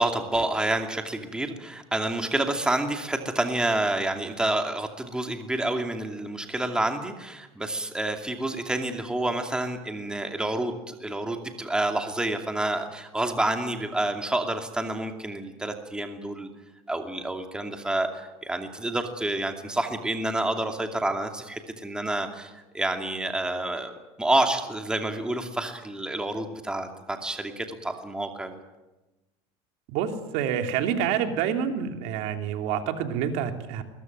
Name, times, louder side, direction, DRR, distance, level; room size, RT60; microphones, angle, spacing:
voice 1, 0.0-16.5 16.9-23.9 24.2-28.6, right 2 dB, 5° right, 4 dB, 2.6 m, -28 dB
voice 2, 29.9-33.8, right 8 dB, 70° right, 5 dB, 3.1 m, -27 dB
21.5 x 21.5 x 9.5 m, 1.1 s
cardioid pair, 135°, 13 cm